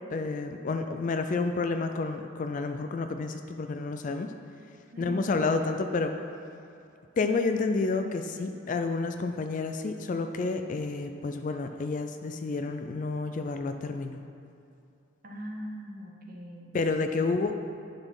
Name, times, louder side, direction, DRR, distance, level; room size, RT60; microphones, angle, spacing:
voice 1, 0.1-4.3 5.0-6.1 7.2-14.2 16.7-17.5, left 3 dB, 40° left, 7 dB, 0.3 m, -30 dB
voice 2, 4.9-5.4 15.2-17.3, equal, 45° right, 0 dB, 1.0 m, -41 dB
9.9 x 4.2 x 5.4 m, 2.5 s
head